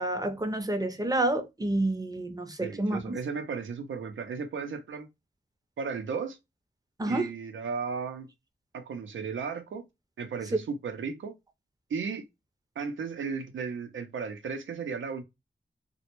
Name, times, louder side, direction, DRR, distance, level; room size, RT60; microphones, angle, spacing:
voice 1, 0.0-3.2 7.0-7.3, right 1 dB, 20° right, 0.6 m, -29 dB
voice 2, 2.6-5.1 5.8-6.4 7.1-8.3 8.7-9.8 10.2-11.3 11.9-12.3 12.8-15.2, right 5 dB, 85° right, 0.5 m, -35 dB
2.1 x 2.0 x 2.9 m
cardioid pair, 55°, 19 cm